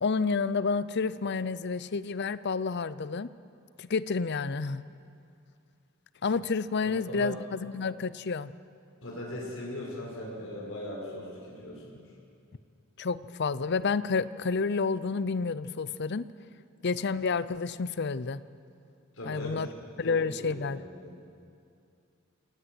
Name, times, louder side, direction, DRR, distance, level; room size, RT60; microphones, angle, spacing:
voice 1, 0.0-3.3 3.8-4.8 6.2-8.5 13.0-16.3 16.8-18.4 19.3-19.7 20.0-20.8, left 4 dB, 55° left, 16 dB, 0.6 m, -30 dB
voice 2, 6.8-7.4 9.0-12.0 19.1-19.7 20.0-21.1, left 1 dB, 75° left, -3 dB, 5.4 m, -39 dB
27.0 x 18.0 x 7.9 m, 2.4 s
head